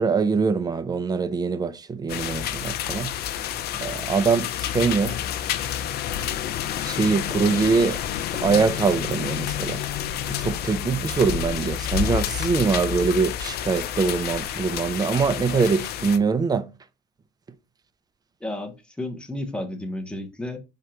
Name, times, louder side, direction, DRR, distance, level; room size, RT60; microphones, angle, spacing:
voice 1, 0.0-3.4 3.7-5.2 6.8-8.0 8.3-9.8 10.3-16.7, right 5 dB, 25° right, 0.5 m, -23 dB
sound 1, 2.1-16.2, left 10 dB, 70° left, 0.5 m, -29 dB
voice 2, 18.4-20.6, left 1 dB, 5° left, 1.0 m, -32 dB
4.5 x 3.7 x 2.8 m
cardioid pair, 110°, 17 cm